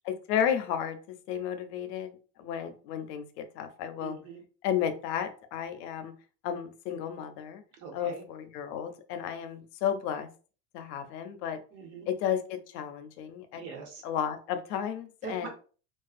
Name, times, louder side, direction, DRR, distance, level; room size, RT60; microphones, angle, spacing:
voice 1, 0.0-4.2 4.6-6.1 6.4-7.6 7.9-10.3 10.7-11.6 12.1-13.6 14.0-15.5, left 9 dB, 80° left, 9 dB, 0.6 m, -33 dB
voice 2, 4.0-4.4 7.8-8.2 11.7-12.1 13.5-14.0 15.2-15.5, right 5 dB, 75° right, 2 dB, 1.1 m, -42 dB
2.4 x 2.3 x 2.4 m, 0.38 s
supercardioid pair, 175°, 49 cm